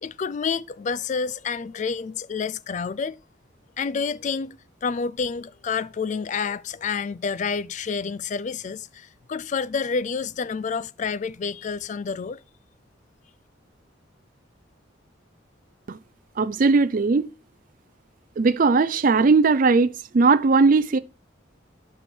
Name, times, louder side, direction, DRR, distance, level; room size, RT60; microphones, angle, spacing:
voice 1, 0.0-3.2 3.8-12.4, left 5 dB, 40° left, 0.3 m, -29 dB
voice 2, 16.4-17.3 18.4-21.0, right 4 dB, 45° right, 0.4 m, -18 dB
6.9 x 5.5 x 6.1 m
head